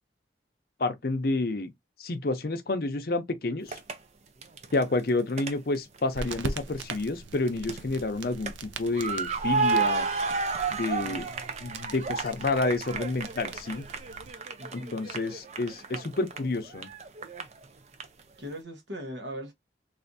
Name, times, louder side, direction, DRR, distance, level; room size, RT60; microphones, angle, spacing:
voice 1, 0.8-1.7 2.0-3.8 4.7-10.1 10.7-11.3 11.6-13.9 14.7-16.9, left 2 dB, 55° left, 0.6 m, -29 dB
sound 1, 3.7-4.0 4.4-6.0 6.3-7.0 7.3-8.5 8.9-17.6 17.9-18.1, right 4 dB, 35° right, 0.4 m, -32 dB
sound 2, 6.1-14.3, right 3 dB, 90° right, 0.5 m, -42 dB
voice 2, 11.0-11.6 14.6-15.0 18.4-19.5, equal, 70° right, 1.0 m, -40 dB
3.3 x 2.5 x 2.5 m
head